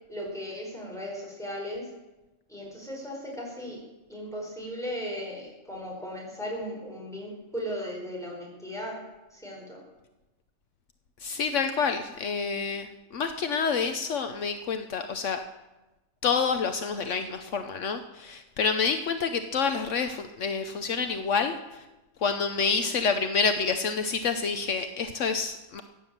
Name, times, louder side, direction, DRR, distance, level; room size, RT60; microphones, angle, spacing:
voice 1, 0.1-1.9 2.5-3.8 4.1-9.0 9.3-9.8, equal, ahead, -3 dB, 4.9 m, -36 dB
voice 2, 11.2-15.4 16.2-21.6 22.2-25.8, left 5 dB, 70° left, 8 dB, 1.1 m, -28 dB
16.0 x 9.4 x 7.3 m, 1.1 s
omnidirectional pair, 1.3 m